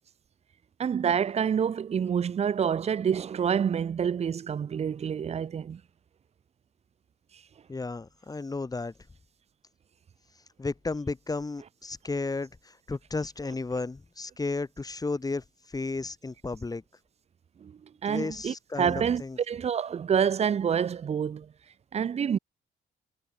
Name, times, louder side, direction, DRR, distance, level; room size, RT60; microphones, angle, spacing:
voice 1, 0.8-5.8 17.6-21.5 21.9-22.4, right 7 dB, 35° right, 0.4 m, -27 dB
voice 2, 7.7-8.9 10.6-15.4 15.7-16.8 18.1-19.4, left 3 dB, 20° left, 1.2 m, -33 dB
cardioid pair, 90°, 20 cm